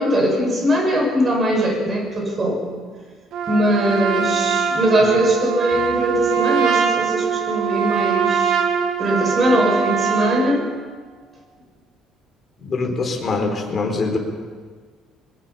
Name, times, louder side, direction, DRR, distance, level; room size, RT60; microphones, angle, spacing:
voice 1, 0.0-2.6 3.5-8.5 9.0-11.1, equal, 25° right, 1 dB, 6.3 m, -20 dB
Trumpet, 3.3-10.6, right 7 dB, 65° right, 2.5 m, -22 dB
voice 2, 12.6-14.2, left 3 dB, 30° left, 2 dB, 4.3 m, -23 dB
23.0 x 21.0 x 5.8 m, 1.5 s
cardioid pair, 145°, 0 cm